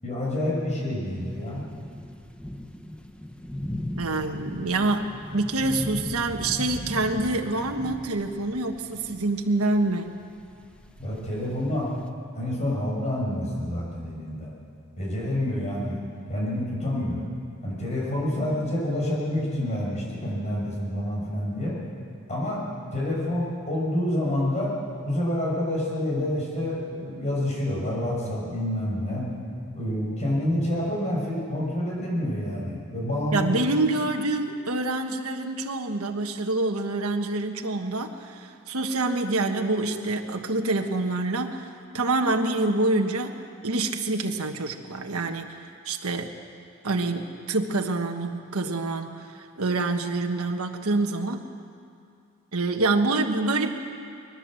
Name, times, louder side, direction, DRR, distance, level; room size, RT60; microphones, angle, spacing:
voice 1, 0.0-1.7 11.0-11.9 12.3-14.5 15.0-16.0 16.3-17.2 17.6-21.8 22.3-22.7 22.9-29.3 29.7-33.6, left 1 dB, 35° left, -4 dB, 6.4 m, -28 dB
sound 1, 1.2-12.1, left 1 dB, 5° left, 1.0 m, -38 dB
voice 2, 4.0-10.2 33.3-41.7 41.9-43.4 43.6-46.4 46.8-51.4 52.5-53.7, right 2 dB, 70° right, 4 dB, 1.4 m, -26 dB
22.0 x 19.5 x 7.7 m, 2.4 s
head